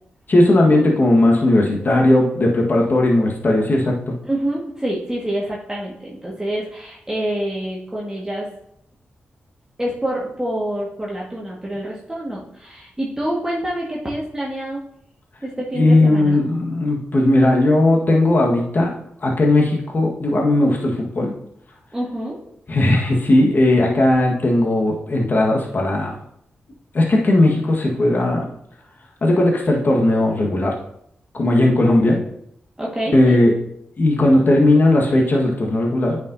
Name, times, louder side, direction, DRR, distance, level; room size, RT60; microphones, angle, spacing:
voice 1, 0.3-4.1 15.7-18.9 19.2-21.3 22.7-26.2 26.9-28.4 29.2-30.7 31.3-32.2 33.1-33.5 34.0-36.2, left 1 dB, 50° left, -1 dB, 1.5 m, -17 dB
voice 2, 4.2-8.5 9.8-14.8 15.4-16.4 21.9-22.4 32.8-33.4, right 1 dB, 15° right, -4 dB, 1.6 m, -26 dB
9.4 x 5.2 x 2.7 m, 0.72 s
cardioid pair, 50°, 4 cm